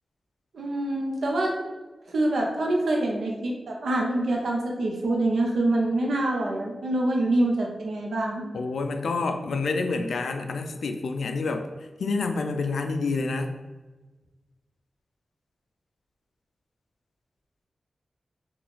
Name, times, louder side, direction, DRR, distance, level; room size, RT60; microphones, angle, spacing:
voice 1, 0.5-1.5 2.1-8.4, right 1 dB, 85° right, -1 dB, 0.7 m, -25 dB
voice 2, 8.5-11.7 12.0-13.5, left 3 dB, 85° left, 6 dB, 0.3 m, -28 dB
2.9 x 2.3 x 3.9 m, 1.2 s
cardioid pair, 50°, 0 cm